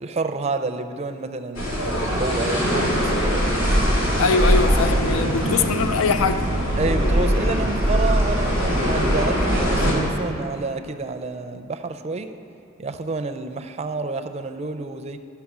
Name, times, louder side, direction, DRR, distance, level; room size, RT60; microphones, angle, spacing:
voice 1, 0.0-1.7 2.0-3.6 6.8-12.3 12.8-15.2, right 3 dB, 30° right, 8 dB, 0.4 m, -29 dB
sound 1, 1.5-9.9, equal, 70° left, 2.4 m, -21 dB
voice 2, 4.2-6.5, left 4 dB, 90° left, 10 dB, 0.4 m, -22 dB
12.5 x 5.8 x 5.9 m, 2.5 s
head